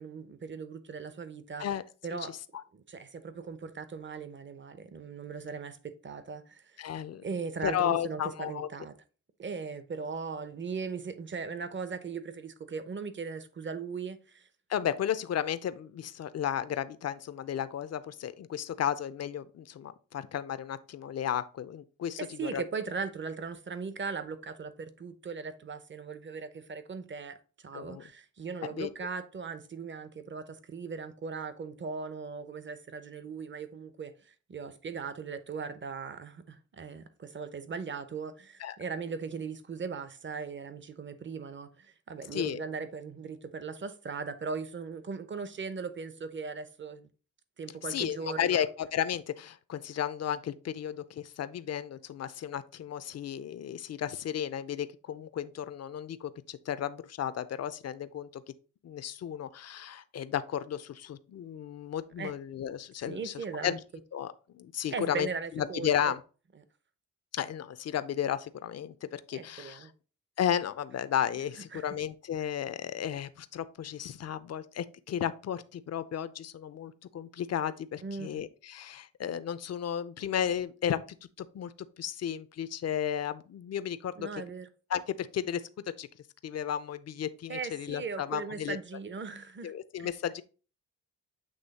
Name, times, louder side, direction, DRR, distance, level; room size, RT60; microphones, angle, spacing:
voice 1, 0.0-1.7 2.0-2.3 2.7-6.6 7.2-8.9 9.4-14.5 22.2-27.4 27.6-47.1 47.6-48.7 62.2-62.3 63.1-63.7 64.9-66.2 69.3-69.9 71.7-71.9 78.0-78.4 84.2-84.7 87.5-89.7, right 5 dB, 35° right, 0.8 m, -39 dB
voice 2, 6.8-7.3 7.6-8.7 14.7-22.6 27.7-28.0 28.7-28.9 38.6-38.8 42.3-42.6 47.9-58.4 58.8-63.3 63.6-63.8 64.1-65.3 65.5-66.2 67.3-69.9 70.4-81.0 81.4-84.3 84.9-85.6 86.0-86.1 86.4-88.8 89.6-90.4, left 9 dB, 50° left, 0.6 m, -34 dB
8.0 x 3.1 x 4.1 m
cardioid pair, 80°, 32 cm